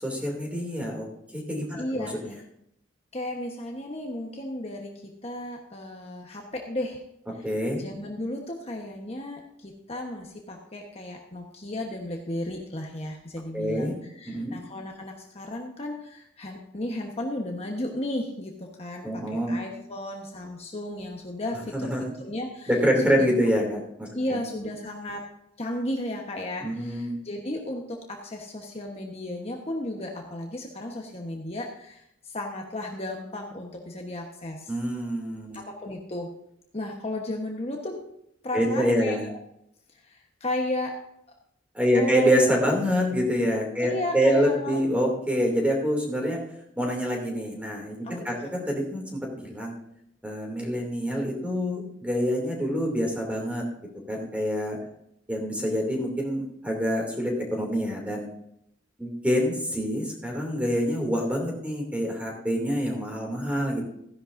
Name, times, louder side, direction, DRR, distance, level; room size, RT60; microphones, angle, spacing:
voice 1, 0.0-1.1 1.3-2.1 7.4-7.8 13.5-13.9 14.3-14.6 19.0-19.6 21.7-22.0 22.7-24.4 26.6-27.2 34.7-35.6 38.5-39.2 41.7-46.4 46.8-49.7 50.2-53.7 54.1-54.8 55.3-58.3 59.0-63.8, equal, 5° right, 0 dB, 2.6 m, -26 dB
voice 2, 1.8-2.3 3.1-7.0 7.3-7.4 7.8-21.9 22.2-22.7 24.1-25.3 25.6-34.7 35.5-36.3 36.7-38.0 38.4-39.4 39.9-41.0 41.9-42.3 43.8-44.9 48.0-48.3, left 1 dB, 35° left, 1 dB, 1.1 m, -34 dB
15.5 x 11.0 x 2.6 m, 0.77 s
head